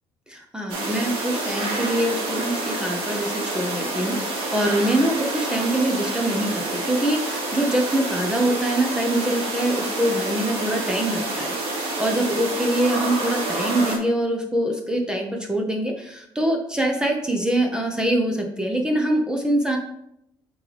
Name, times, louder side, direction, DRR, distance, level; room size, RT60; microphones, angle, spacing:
voice 1, 0.3-19.8, right 1 dB, 10° right, 2 dB, 0.9 m, -24 dB
sound 1, 0.7-14.0, right 2 dB, 65° right, 2.1 m, -28 dB
8.0 x 3.9 x 3.4 m, 0.78 s
cardioid pair, 110°, 10 cm